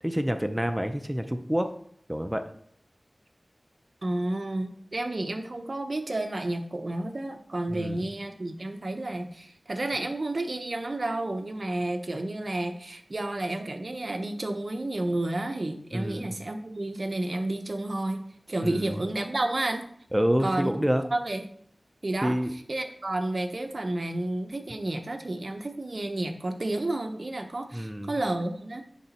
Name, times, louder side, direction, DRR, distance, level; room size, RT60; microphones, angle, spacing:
voice 1, 0.0-1.7 2.1-2.5 7.7-8.1 15.9-16.3 18.6-19.0 20.1-21.0 22.2-22.5 27.7-28.1, equal, 10° right, 8 dB, 0.5 m, -27 dB
voice 2, 4.0-18.2 18.5-19.9 20.4-20.7 21.1-21.4 22.0-22.4 22.7-28.9, right 2 dB, 55° right, 6 dB, 0.8 m, -31 dB
10.0 x 3.9 x 4.2 m, 0.64 s
wide cardioid pair, 75°, 0 cm